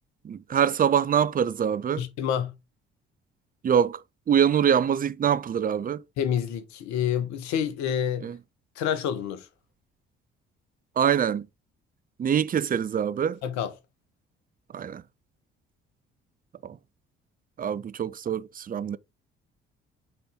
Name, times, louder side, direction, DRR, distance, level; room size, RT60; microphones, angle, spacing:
voice 1, 0.2-2.0 3.6-4.0 4.3-6.0 8.2-8.4 11.0-11.5 12.2-13.4 14.7-15.0 16.6-16.8 17.6-19.0, right 8 dB, 30° right, 0.6 m, -24 dB
voice 2, 2.0-2.5 6.2-8.3 8.8-9.5 13.4-13.7, left 9 dB, 65° left, 1.3 m, -28 dB
8.1 x 4.3 x 3.6 m
figure-of-eight pair, 45°, 30 cm